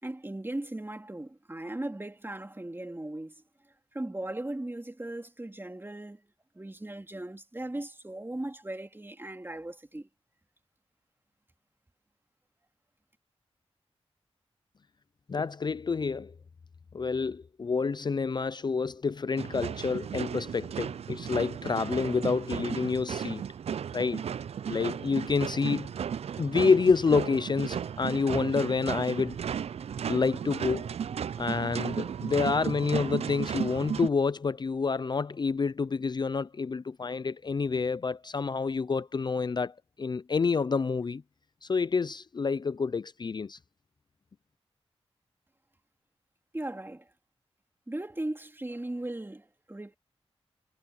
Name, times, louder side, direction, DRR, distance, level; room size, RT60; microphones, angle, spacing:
voice 1, 0.0-3.3 3.9-6.2 6.5-10.1 46.5-47.1 47.9-50.0, right 1 dB, 20° right, 3.3 m, -38 dB
voice 2, 15.3-16.3 16.9-23.4 23.9-24.2 24.7-25.9 26.4-29.4 30.1-30.9 31.4-41.2 41.6-43.6, left 5 dB, 40° left, 0.5 m, -28 dB
sound 1, 19.4-34.1, right 8 dB, 70° right, 0.4 m, -34 dB
cardioid pair, 55°, 11 cm